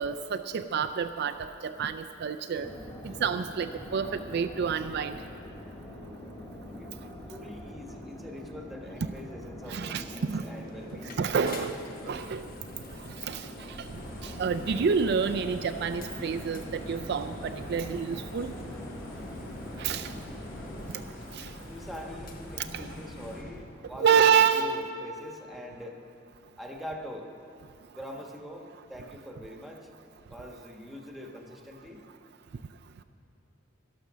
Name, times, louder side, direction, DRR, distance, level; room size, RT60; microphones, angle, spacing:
voice 1, 0.0-2.7 3.0-5.2 9.0-9.1 9.7-10.4 11.2-11.8 12.1-12.4 13.0-13.9 14.2-18.5 19.8-20.1 21.3-21.5 22.6-22.9 24.0-24.9, right 6 dB, 60° right, 9 dB, 0.4 m, -28 dB
sound 1, 2.5-20.9, left 1 dB, 25° left, 2.1 m, -44 dB
voice 2, 6.8-11.2 21.6-26.0 26.6-27.3 27.9-29.9 30.3-32.0, left 1 dB, ahead, 1 dB, 1.2 m, -43 dB
sound 2, 10.3-23.4, left 3 dB, 45° left, 0.9 m, -51 dB
sound 3, 13.8-23.5, left 1 dB, 75° left, 2.6 m, -44 dB
12.5 x 12.0 x 6.2 m, 2.6 s
head